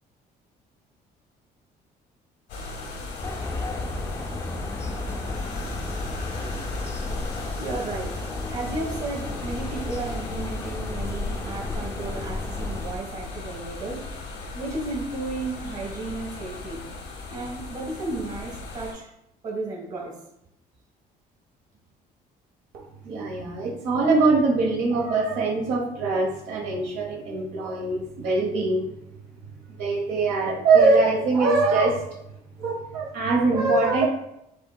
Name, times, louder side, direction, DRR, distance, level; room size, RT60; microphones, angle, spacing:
sound 1, 2.5-18.9, left 3 dB, 90° left, 1.1 m, -37 dB
sound 2, 3.2-12.9, left 2 dB, 15° left, 0.4 m, -33 dB
voice 1, 7.4-8.2 8.5-14.1 14.5-16.8 17.3-19.1 19.4-20.2, right 2 dB, 50° right, -1 dB, 1.6 m, -33 dB
voice 2, 22.7-28.9 29.8-32.0 32.6-34.1, right 3 dB, 85° right, -2 dB, 1.0 m, -22 dB
8.0 x 2.8 x 2.3 m, 0.83 s
cardioid pair, 110°, 17 cm